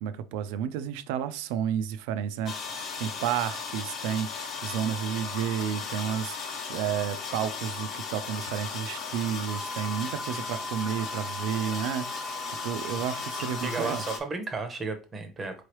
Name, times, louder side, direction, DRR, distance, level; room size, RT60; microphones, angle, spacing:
voice 1, 0.0-12.4 12.6-14.0, right 9 dB, 75° right, 0.4 m, -31 dB
sound 1, 2.5-14.2, left 4 dB, 35° left, 0.9 m, -36 dB
voice 2, 13.6-15.6, right 3 dB, 15° right, 0.7 m, -33 dB
4.4 x 3.2 x 3.0 m
cardioid pair, 175°, 0 cm